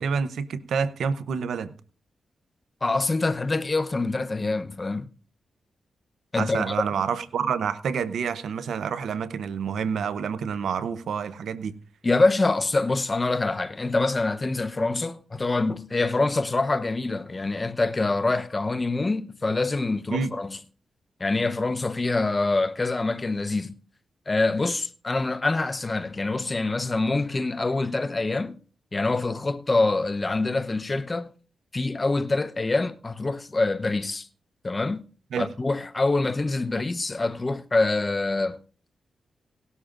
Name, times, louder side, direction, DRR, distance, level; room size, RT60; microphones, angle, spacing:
voice 1, 0.0-1.7 6.4-11.7 20.1-20.3 35.3-35.5, right 6 dB, 80° right, 0.7 m, -28 dB
voice 2, 2.8-5.1 6.3-6.7 12.0-20.6 21.2-23.8 24.3-28.6 28.9-31.3 31.7-34.3 34.6-35.0 35.4-38.6, left 3 dB, 30° left, 0.8 m, -25 dB
18.0 x 12.5 x 2.5 m
cardioid pair, 60°, 0 cm